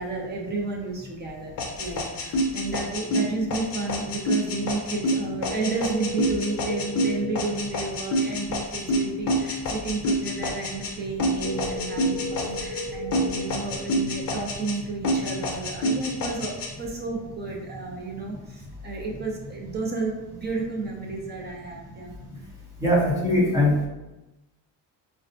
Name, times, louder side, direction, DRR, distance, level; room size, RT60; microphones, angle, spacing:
voice 1, 0.0-1.5 1.8-22.1, right 3 dB, 25° right, -1 dB, 0.3 m, -32 dB
sound 1, 1.6-10.9 11.2-12.9 13.1-14.8 15.0-16.7, equal, 50° left, 0.7 m, -27 dB
sound 2, 5.5-7.5 11.4-13.5, equal, 20° left, 1.5 m, -34 dB
voice 2, 22.8-23.9, left 1 dB, 5° right, -7 dB, 0.8 m, -21 dB
5.0 x 2.1 x 2.6 m, 1.0 s
cardioid pair, 175°, 44 cm